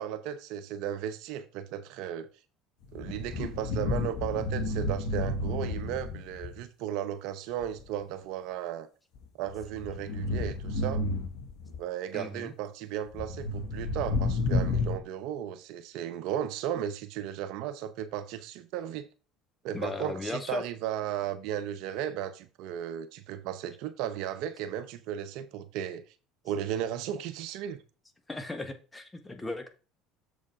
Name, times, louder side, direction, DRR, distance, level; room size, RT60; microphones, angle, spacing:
voice 1, 0.0-2.3 2.9-8.9 9.4-11.0 11.8-19.1 19.6-26.0 26.4-27.8, right 10 dB, 70° right, 0.8 m, -35 dB
sound 1, 2.8-6.6 7.6-7.9 9.2-11.8 13.1-15.0, left 2 dB, 70° left, 1.8 m, -31 dB
voice 2, 12.1-12.5 19.7-20.6 28.3-29.7, left 2 dB, 15° left, 1.5 m, -36 dB
7.2 x 5.2 x 4.8 m
supercardioid pair, 85°, 0 cm